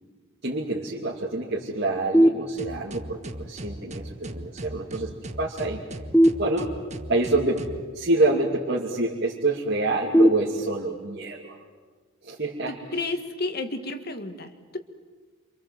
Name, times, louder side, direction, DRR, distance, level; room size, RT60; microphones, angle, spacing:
voice 1, 0.4-5.1 5.4-5.8 6.4-6.7 7.1-7.6 7.9-11.6 12.2-12.7, right 2 dB, 50° right, -4 dB, 2.6 m, -27 dB
sound 1, 2.1-3.1 6.1-7.1 10.1-11.1, equal, 5° left, 1.1 m, -22 dB
sound 2, 2.6-7.9, right 1 dB, 30° right, 1.3 m, -38 dB
voice 2, 12.7-14.8, left 2 dB, 45° left, 8 dB, 1.9 m, -32 dB
28.5 x 26.0 x 7.8 m, 1.4 s
head